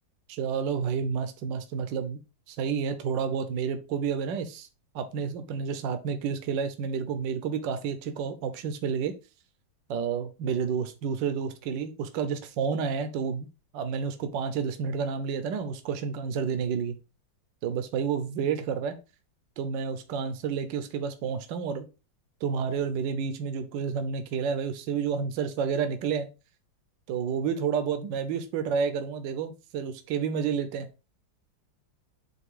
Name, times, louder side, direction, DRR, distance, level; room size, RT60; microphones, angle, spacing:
voice 1, 0.3-2.2 2.5-4.7 4.9-9.1 9.9-13.5 13.7-16.9 17.6-19.0 19.6-21.8 22.4-26.3 27.1-30.9, right 6 dB, 75° right, 9 dB, 1.4 m, -30 dB
8.0 x 2.7 x 4.9 m, 0.30 s
omnidirectional pair, 2.1 m